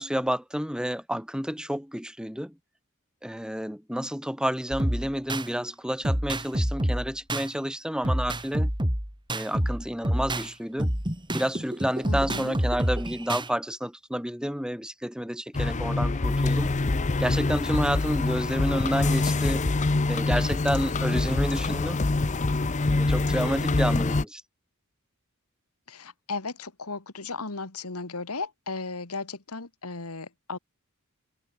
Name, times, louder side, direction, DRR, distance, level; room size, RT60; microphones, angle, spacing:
voice 1, 0.0-2.6 3.2-8.7 9.3-10.9 11.3-16.7 17.2-19.7 20.1-22.0 22.9-24.4, equal, 5° right, 4.9 m, -30 dB
sound 1, 4.7-5.5 6.0-7.5 8.0-10.5 10.8-13.5, right 1 dB, 20° right, 3.8 m, -27 dB
voice 2, 12.1-12.6 25.9-30.6, left 3 dB, 90° left, 2.4 m, -35 dB
sound 2, 15.5-24.2, left 2 dB, 35° left, 0.7 m, -25 dB
head